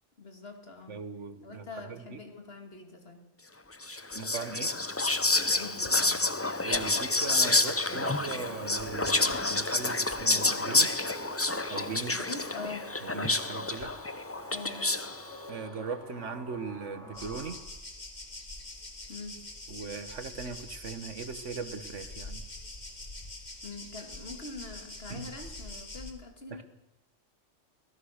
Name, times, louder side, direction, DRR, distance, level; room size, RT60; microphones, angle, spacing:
voice 1, 0.2-1.0 1.4-3.2 5.6-6.2 12.1-12.9 14.5-15.0 19.1-19.4 23.6-26.6, left 3 dB, 55° left, 4 dB, 2.7 m, -43 dB
voice 2, 0.9-2.2 4.1-4.7 6.6-11.0 11.7-12.2 13.0-13.9 15.5-17.6 19.7-22.4 25.1-25.3 26.5-26.6, right 5 dB, 75° right, 10 dB, 1.6 m, -39 dB
Whispering, 3.8-15.2, left 2 dB, 15° left, 0.5 m, -29 dB
sound 1, 7.8-17.5, equal, 75° left, 5.6 m, -47 dB
sound 2, 17.1-26.1, left 2 dB, 35° left, 2.5 m, -44 dB
24.5 x 16.5 x 6.6 m, 0.95 s
omnidirectional pair, 1.3 m